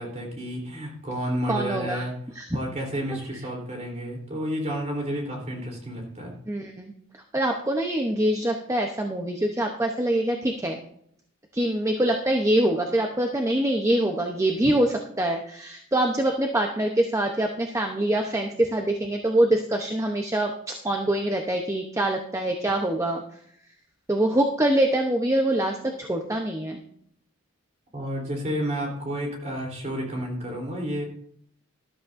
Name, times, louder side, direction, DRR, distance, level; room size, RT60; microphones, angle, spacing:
voice 1, 0.0-2.1 2.5-6.3 27.9-31.1, equal, 35° right, 0 dB, 3.5 m, -31 dB
voice 2, 1.5-2.0 2.3-2.6 6.5-10.8 11.5-23.2 24.1-26.8, right 1 dB, 15° right, 2 dB, 0.8 m, -24 dB
13.5 x 12.5 x 2.6 m, 0.67 s
head